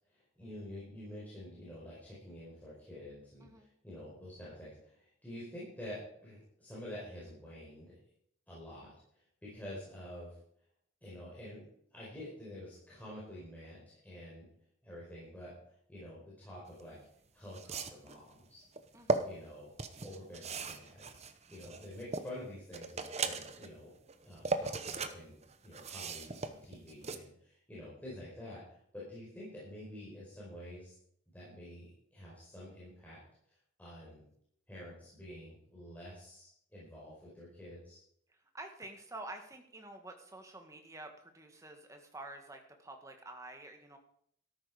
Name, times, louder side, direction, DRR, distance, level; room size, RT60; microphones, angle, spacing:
voice 1, 0.1-8.0 8.5-10.3 11.0-14.5 14.8-15.5 15.9-17.0 17.3-18.6 19.2-19.7 20.0-21.1 21.5-23.9 24.2-25.4 25.6-30.9 31.3-33.2 33.8-34.2 34.7-38.0, left 1 dB, 10° left, -8 dB, 4.8 m, -48 dB
sound 1, 16.8-16.9 17.5-18.1 18.8-19.2 19.8-22.3 22.7-23.7 24.1-25.1 25.4-27.2, right 3 dB, 30° right, 0.9 m, -37 dB
voice 2, 18.9-19.3 38.3-44.0, right 2 dB, 15° right, 4 dB, 1.7 m, -49 dB
13.5 x 12.5 x 5.0 m, 0.68 s
head